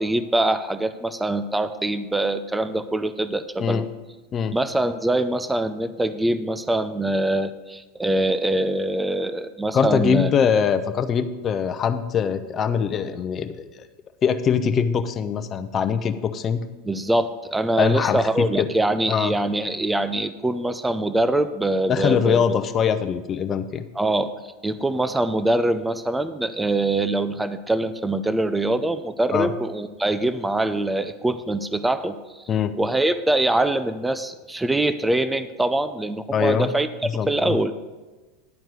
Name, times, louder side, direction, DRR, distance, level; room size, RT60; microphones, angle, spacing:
voice 1, 0.0-3.9 4.5-10.3 16.8-22.6 24.0-24.3 24.6-32.2 32.8-36.9 37.3-37.7, right 1 dB, 10° right, 12 dB, 0.5 m, -23 dB
voice 2, 9.7-13.9 14.2-16.6 17.8-18.7 19.1-19.3 21.9-23.9 29.3-29.5 32.5-32.7 36.3-36.7 37.0-37.6, left 7 dB, 35° left, 9 dB, 0.8 m, -22 dB
11.0 x 4.5 x 8.0 m, 1.2 s
hypercardioid pair, 105°, 0 cm